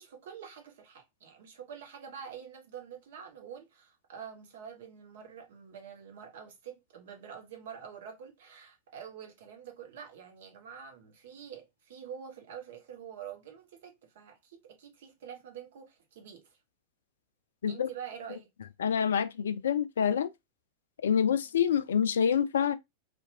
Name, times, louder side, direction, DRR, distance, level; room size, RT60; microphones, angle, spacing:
voice 1, 0.0-16.5 17.7-18.5, right 8 dB, 55° right, 0.7 m, -46 dB
voice 2, 18.8-20.3 21.0-22.7, left 8 dB, 65° left, 0.3 m, -27 dB
2.6 x 2.1 x 2.6 m
figure-of-eight pair, 90°, 0 cm